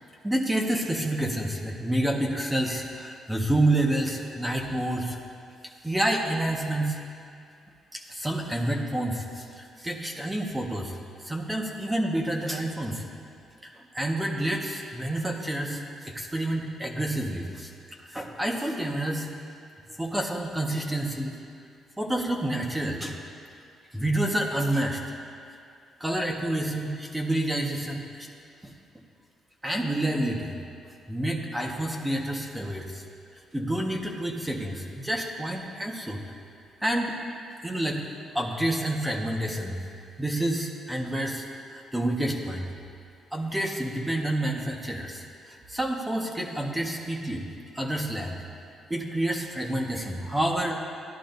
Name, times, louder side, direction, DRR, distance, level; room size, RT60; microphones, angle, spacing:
voice 1, 0.2-5.2 5.8-7.0 7.9-11.0 11.2-13.0 13.6-17.7 18.0-19.3 20.0-21.3 22.0-23.1 23.9-25.0 26.0-28.3 28.6-28.7 29.6-30.6 31.1-33.0 33.5-36.2 36.8-37.2 37.6-38.0 38.3-39.8 40.2-42.7 43.3-47.5 47.7-48.4 48.9-50.8, right 1 dB, 10° right, 0 dB, 1.5 m, -28 dB
17.0 x 11.5 x 2.8 m, 2.4 s
cardioid pair, 90°, 0 cm